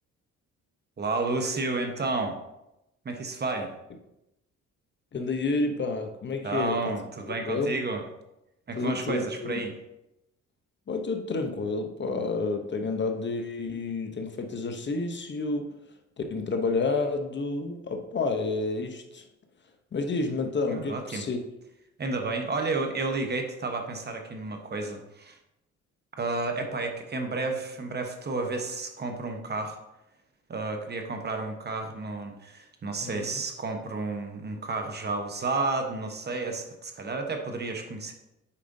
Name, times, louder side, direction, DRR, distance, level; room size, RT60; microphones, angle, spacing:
voice 1, 1.0-2.4 3.0-3.7 6.4-8.0 8.7-9.7 20.7-21.2 22.0-25.4 26.2-29.8 30.5-38.1, right 3 dB, 35° right, 4 dB, 1.0 m, -31 dB
voice 2, 5.1-6.9 7.3-7.8 8.8-9.6 10.9-15.7 16.2-19.2 19.9-21.4 33.0-33.4, left 3 dB, 40° left, 5 dB, 0.7 m, -30 dB
8.5 x 5.0 x 2.6 m, 0.89 s
cardioid pair, 90°, 30 cm